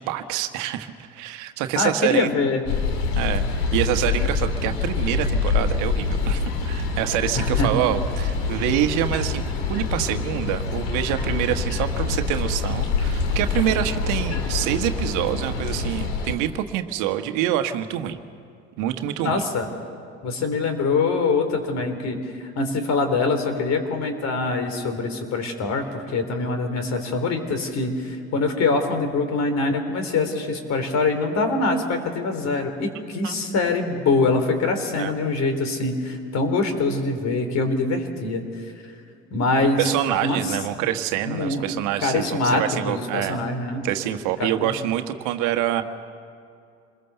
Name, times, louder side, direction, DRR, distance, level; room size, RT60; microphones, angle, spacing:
voice 1, 0.0-2.3 3.2-3.4 3.7-9.4 9.7-18.2 18.8-19.4 33.2-33.3 35.0-35.1 39.8-43.4 43.8-45.8, right 12 dB, 65° right, 7 dB, 1.4 m, -26 dB
voice 2, 1.8-2.6 7.3-7.8 19.2-19.7 20.2-22.2 22.6-38.4 39.3-39.9 40.2-40.6 41.3-41.7 42.0-43.8 44.4-44.8, left 3 dB, 50° left, 7 dB, 3.6 m, -24 dB
sound 1, 2.7-16.4, left 4 dB, 70° left, 3.1 m, -25 dB
26.5 x 21.5 x 6.9 m, 2.4 s
hypercardioid pair, 70°, 34 cm